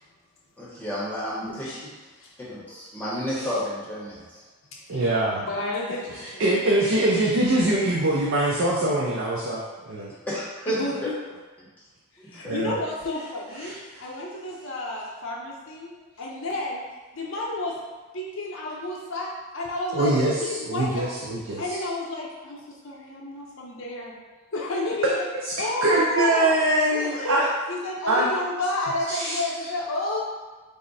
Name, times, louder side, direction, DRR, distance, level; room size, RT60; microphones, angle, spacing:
voice 1, 0.6-1.7 2.5-4.4 10.3-10.8 11.6-11.7 12.2-12.6, equal, 10° left, -8 dB, 0.8 m, -31 dB
voice 2, 1.4-2.3 3.0-3.1 4.2-4.3 4.7-5.0 5.4-6.4 10.7-11.2 12.2-16.8 17.1-17.8 18.1-21.1 21.6-24.1 24.5-25.3 25.6-26.5 26.9-27.4 27.7-30.2, left 1 dB, 65° left, -3 dB, 0.7 m, -31 dB
voice 3, 4.9-5.4 6.2-10.1 12.4-12.8 13.6-13.7 19.9-20.3 20.7-21.8 25.4-25.5 25.8-27.5 28.1-28.3 29.1-29.4, right 1 dB, 60° right, -4 dB, 0.4 m, -23 dB
3.5 x 2.0 x 3.9 m, 1.3 s
head